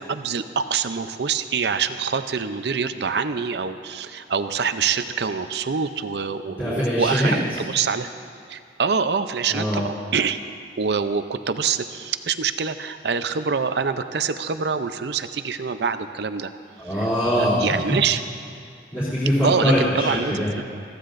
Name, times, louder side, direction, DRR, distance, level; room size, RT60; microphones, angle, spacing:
voice 1, 0.0-8.1 8.5-10.4 10.8-16.5 17.3-18.2 19.4-20.6, right 6 dB, 70° right, 10 dB, 0.6 m, -25 dB
voice 2, 6.5-7.6 9.5-9.8 16.8-18.0 18.9-20.5, equal, 15° left, -12 dB, 3.3 m, -22 dB
21.5 x 15.0 x 2.6 m, 2.3 s
head